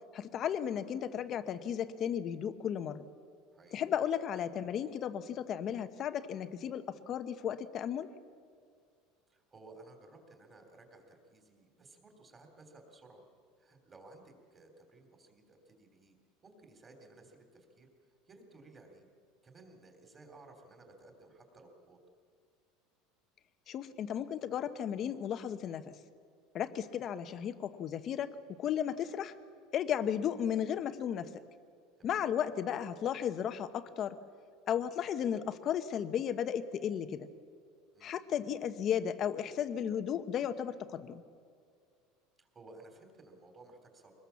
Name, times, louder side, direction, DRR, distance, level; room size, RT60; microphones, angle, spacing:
voice 1, 0.1-3.1 3.7-8.1 23.7-25.9 26.5-28.3 28.6-29.3 29.7-31.3 32.0-34.2 34.7-37.3 38.0-41.2, left 9 dB, 35° left, 11 dB, 1.0 m, -34 dB
voice 2, 3.5-3.9 9.3-13.2 13.6-16.2 16.4-17.9 18.3-19.1 19.4-22.0 32.0-32.3 37.9-38.2 42.4-44.1, right 2 dB, 20° right, 4 dB, 3.5 m, -57 dB
24.0 x 20.0 x 7.1 m, 2.2 s
supercardioid pair, 145°, 0 cm